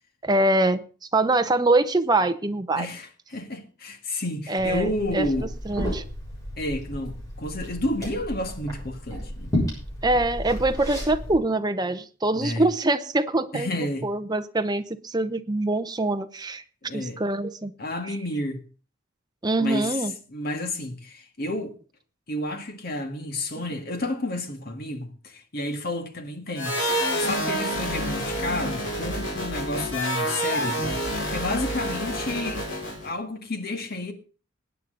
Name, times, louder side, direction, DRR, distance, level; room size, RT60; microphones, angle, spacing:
voice 1, 0.2-0.8 1.1-2.9 4.5-5.3 5.7-6.0 10.0-13.7 14.0-16.6 16.9-17.7 18.1-18.2 19.4-20.1, right 2 dB, 20° right, 0.8 m, -24 dB
voice 2, 2.7-5.5 6.6-9.5 12.3-12.7 13.5-14.1 16.8-17.2 17.8-18.6 19.6-20.0 20.3-21.7 22.3-26.8 27.2-30.9 31.3-32.7 33.0-34.1, left 1 dB, 50° left, 1.9 m, -31 dB
Liquid, 4.6-11.3, equal, 15° left, 6.9 m, -32 dB
sound 1, 26.6-33.1, equal, 70° left, 5.7 m, -28 dB
20.5 x 9.1 x 3.9 m
head